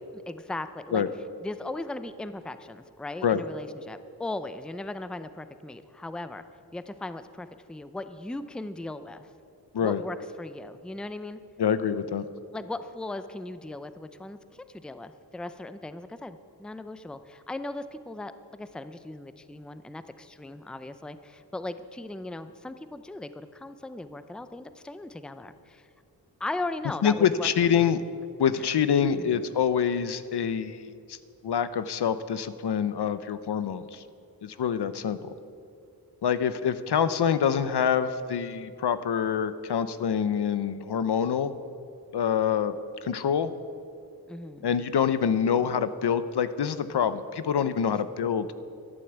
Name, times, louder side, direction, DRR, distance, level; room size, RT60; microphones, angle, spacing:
voice 1, 0.1-1.0 1.4-6.4 6.7-9.3 9.8-11.4 12.5-14.4 14.7-25.8 26.4-27.8 28.6-28.7 29.0-29.4 44.3-44.7, left 2 dB, ahead, 11 dB, 0.5 m, -38 dB
voice 2, 11.6-12.3 27.0-28.0 28.4-30.8 31.1-31.2 31.4-34.0 34.4-35.2 36.2-41.5 42.1-42.7 43.0-43.5 44.6-48.5, left 8 dB, 75° left, 13 dB, 0.7 m, -26 dB
12.0 x 11.5 x 8.0 m, 2.5 s
wide cardioid pair, 120°, 40 cm